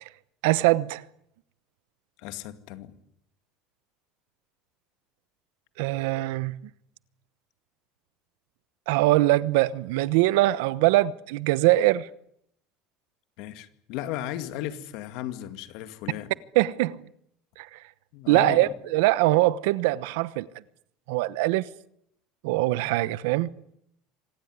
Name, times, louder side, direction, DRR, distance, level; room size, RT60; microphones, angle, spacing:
voice 1, 0.4-1.0 5.8-6.6 8.9-12.1 16.5-17.0 17.6-17.8 18.3-20.5 21.1-21.6 22.4-23.5, right 17 dB, 80° right, 1.0 m, -22 dB
voice 2, 2.2-2.9 13.4-16.3 18.1-18.7, left 12 dB, 55° left, 2.3 m, -35 dB
26.0 x 19.0 x 9.6 m
cardioid pair, 175°, 0 cm